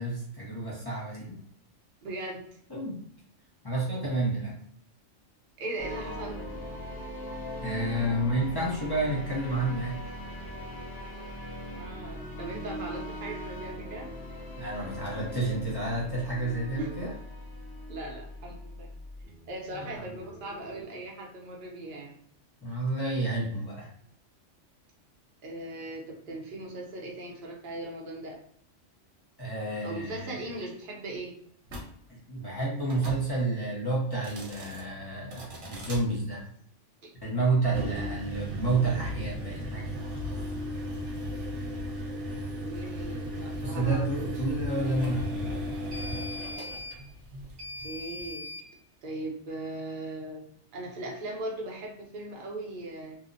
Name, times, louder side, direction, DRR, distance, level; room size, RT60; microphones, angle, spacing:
voice 1, 0.0-1.4 2.7-3.0 3.6-4.5 7.6-10.0 14.6-17.1 19.7-20.0 22.6-23.9 29.4-30.4 32.1-36.4 37.2-40.0 43.6-46.0, right 2 dB, 25° left, -6 dB, 0.6 m, -30 dB
voice 2, 2.0-2.4 5.6-6.5 11.7-14.1 16.8-16.9 17.9-18.9 19.5-22.1 25.4-28.4 29.8-31.3 42.6-44.3 47.8-48.5 49.0-50.4 50.7-53.2, right 1 dB, 50° right, -1 dB, 0.7 m, -38 dB
sound 1, 5.8-20.9, equal, 65° left, 0.9 m, -41 dB
sound 2, 31.7-31.9 32.8-33.2 34.1-34.8 35.3-36.0 37.6-48.7, equal, 70° right, 1.0 m, -36 dB
2.8 x 2.0 x 2.5 m, 0.65 s
omnidirectional pair, 1.3 m